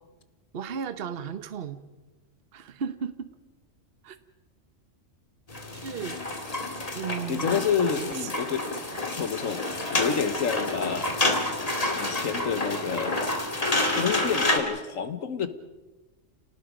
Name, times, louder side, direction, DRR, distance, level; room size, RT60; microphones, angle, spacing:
voice 1, 0.5-1.8 2.5-3.3 4.0-4.2 5.8-6.2 6.9-7.5 7.8-8.3, right 7 dB, 50° right, 11 dB, 1.1 m, -35 dB
sound 1, 5.5-14.6, left 2 dB, 30° left, 2.1 m, -29 dB
voice 2, 7.3-8.7 9.0-9.6 9.9-11.2 11.8-13.2 13.7-15.5, left 7 dB, 85° left, 11 dB, 1.6 m, -29 dB
30.0 x 19.0 x 5.2 m, 1.2 s
omnidirectional pair, 1.3 m